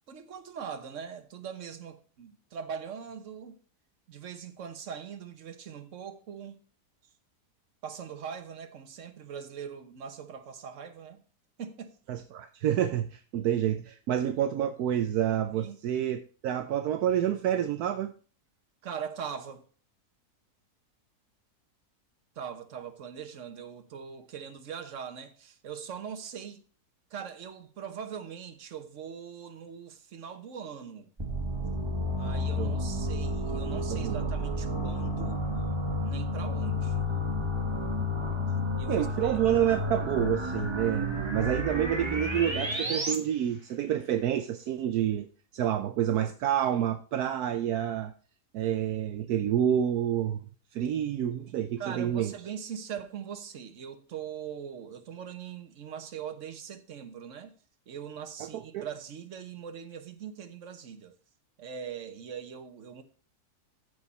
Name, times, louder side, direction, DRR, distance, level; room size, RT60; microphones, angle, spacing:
voice 1, 0.1-3.6 4.1-6.6 7.8-11.2 11.6-11.9 15.5-15.8 18.8-19.6 22.4-26.6 27.1-31.1 32.2-35.4 36.0-37.1 38.8-39.4 51.8-57.5 57.9-61.1 61.6-63.0, right 7 dB, 50° right, 1.4 m, -41 dB
voice 2, 12.1-18.1 32.6-32.8 33.9-34.3 38.9-45.3 45.5-48.1 48.5-50.4 50.7-52.3 58.4-58.9, right 10 dB, 75° right, 1.1 m, -28 dB
sound 1, 31.2-43.2, left 1 dB, 20° right, 1.1 m, -31 dB
14.0 x 4.9 x 4.1 m
omnidirectional pair, 1.7 m